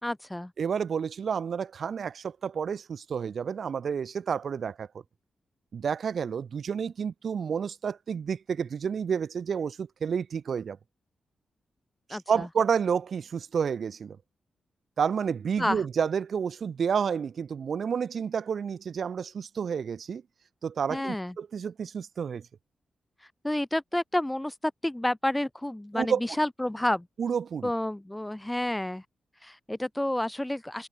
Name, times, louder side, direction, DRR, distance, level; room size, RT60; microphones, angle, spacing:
voice 1, 0.0-0.5 12.1-12.4 15.6-15.8 20.9-21.3 23.4-24.5 24.8-27.1 27.6-29.0 29.4-30.9, left 1 dB, 10° left, 1.5 m, -30 dB
voice 2, 0.6-4.9 5.7-10.8 12.1-14.2 15.0-20.2 20.6-22.5 25.9-26.2 27.2-27.7, right 7 dB, 65° right, 0.7 m, -30 dB
cardioid pair, 85°, 0 cm